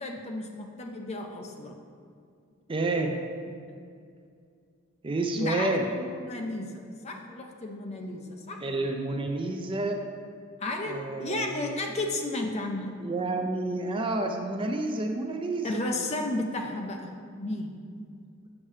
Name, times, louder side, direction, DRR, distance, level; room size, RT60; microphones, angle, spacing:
voice 1, 0.0-1.7 3.5-3.8 5.4-8.6 10.6-13.0 15.6-17.1 17.4-17.7, left 2 dB, 30° left, 2 dB, 0.6 m, -33 dB
voice 2, 2.7-3.1 5.0-5.9 8.6-10.0 10.8-11.7 13.0-15.8, right 2 dB, 25° right, 4 dB, 0.4 m, -29 dB
7.2 x 6.7 x 3.2 m, 2.3 s
head